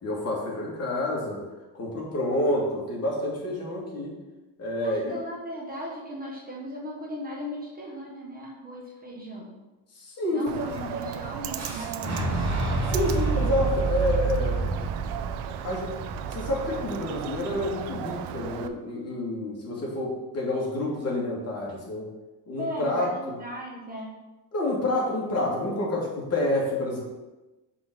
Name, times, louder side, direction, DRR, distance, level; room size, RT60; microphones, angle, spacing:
voice 1, 0.0-1.4 1.7-4.1 4.6-5.2 9.9-10.9 12.9-14.6 15.6-15.9 16.3-22.1 22.5-23.3 24.5-27.0, left 1 dB, 40° left, -3 dB, 2.3 m, -28 dB
voice 2, 4.8-9.5 10.3-12.8 22.6-24.2, equal, 20° right, -2 dB, 1.3 m, -37 dB
Bird, 10.5-18.7, right 10 dB, 85° right, 0.6 m, -36 dB
Boom, 11.5-17.4, right 3 dB, 45° right, 2.4 m, -29 dB
6.0 x 4.0 x 6.3 m, 1.1 s
cardioid pair, 130°, 40 cm